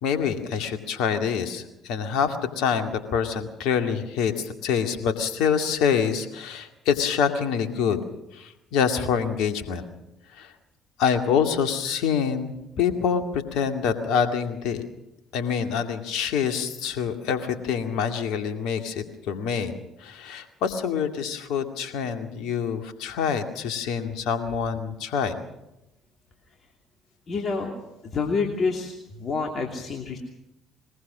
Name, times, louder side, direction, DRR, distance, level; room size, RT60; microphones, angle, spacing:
voice 1, 0.0-8.0 8.3-9.8 10.4-10.5 11.0-14.9 15.3-25.3, left 7 dB, 65° left, 6 dB, 2.2 m, -26 dB
voice 2, 27.3-27.7 28.0-30.2, left 4 dB, 45° left, 1 dB, 2.9 m, -28 dB
22.0 x 22.0 x 6.3 m, 0.90 s
figure-of-eight pair, 50°, 0 cm